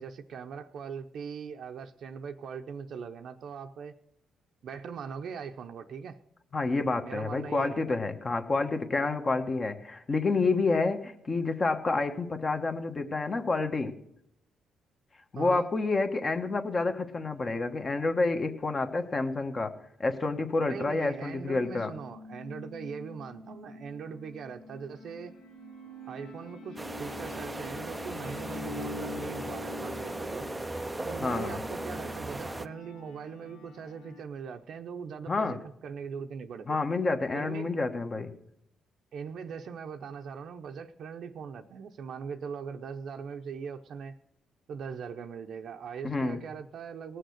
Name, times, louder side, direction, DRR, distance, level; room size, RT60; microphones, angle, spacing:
voice 1, 0.0-3.9 4.6-6.2 7.0-7.9 15.4-15.7 20.6-25.3 26.0-30.5 31.0-36.8 37.3-37.9 39.1-44.2 44.7-47.2, right 6 dB, 65° right, 5 dB, 0.7 m, -40 dB
voice 2, 6.5-13.9 15.3-19.7 20.0-21.9 31.2-31.6 35.3-35.6 36.7-38.3 46.0-46.4, left 3 dB, 35° left, 7 dB, 1.3 m, -29 dB
sound 1, 21.7-34.2, left 3 dB, 85° left, 1.2 m, -45 dB
sound 2, 26.8-32.7, right 2 dB, 15° right, 0.5 m, -37 dB
18.0 x 6.5 x 6.4 m, 0.78 s
cardioid pair, 90°, 0 cm